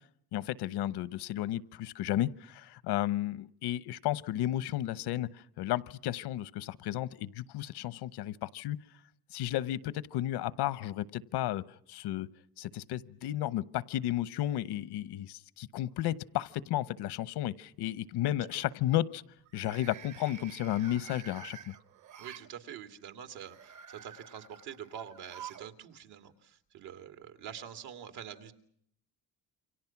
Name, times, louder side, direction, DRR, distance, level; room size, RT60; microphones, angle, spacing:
voice 1, 0.3-8.8 9.3-12.3 12.6-19.2 19.5-21.7, left 13 dB, 85° left, 19 dB, 1.1 m, -33 dB
sound 1, 15.9-16.5 16.9-17.3 19.4-22.5 23.3-25.7 26.0-26.1 27.2-27.3, right 9 dB, 50° right, 1.1 m, -50 dB
voice 2, 22.2-28.5, right 9 dB, 80° right, 9 dB, 2.9 m, -46 dB
29.0 x 25.0 x 5.9 m, 0.67 s
cardioid pair, 145°, 38 cm